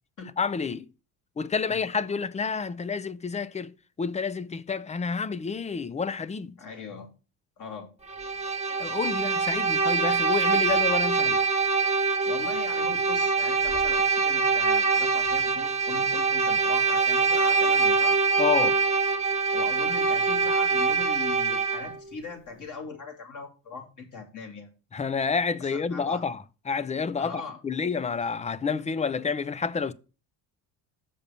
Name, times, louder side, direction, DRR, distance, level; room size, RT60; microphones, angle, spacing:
voice 1, 0.4-0.9 1.4-6.6 8.8-11.4 18.4-18.8 24.9-29.9, left 5 dB, 15° left, 0.4 m, -29 dB
voice 2, 6.6-7.1 7.6-7.9 12.2-18.2 19.5-24.7 25.6-26.2 27.2-27.6, left 4 dB, 45° left, 3.0 m, -40 dB
Bowed string instrument, 8.1-22.0, right 4 dB, 15° right, 1.1 m, -24 dB
7.1 x 5.3 x 6.7 m
cardioid pair, 120°, 43 cm